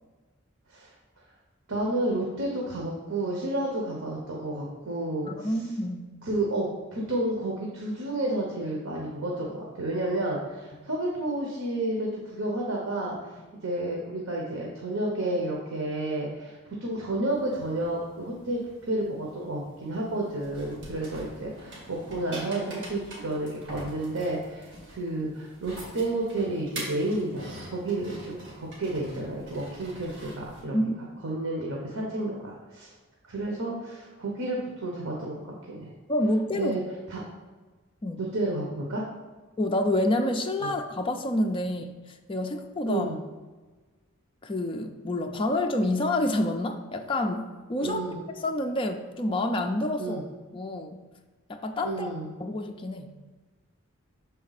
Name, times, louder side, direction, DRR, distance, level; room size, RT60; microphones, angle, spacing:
voice 1, 1.7-5.5 6.2-13.3 13.6-30.8 31.2-32.9 33.2-35.9 36.5-36.8 37.1-37.2 38.2-39.0 40.6-40.7 42.9-43.2 47.8-48.2 50.0-50.2 51.8-52.3, right 1 dB, 75° right, -2 dB, 1.0 m, -31 dB
voice 2, 5.3-6.1 10.7-10.8 30.7-31.1 36.1-36.8 38.0-38.2 39.6-42.0 42.3-43.1 44.4-48.0 48.4-50.2 50.5-51.0 51.5-52.1 52.4-53.1, left 1 dB, 25° left, 4 dB, 0.4 m, -28 dB
sound 1, 17.3-30.6, right 1 dB, 55° right, 1.9 m, -45 dB
6.3 x 4.3 x 4.0 m, 1.3 s
head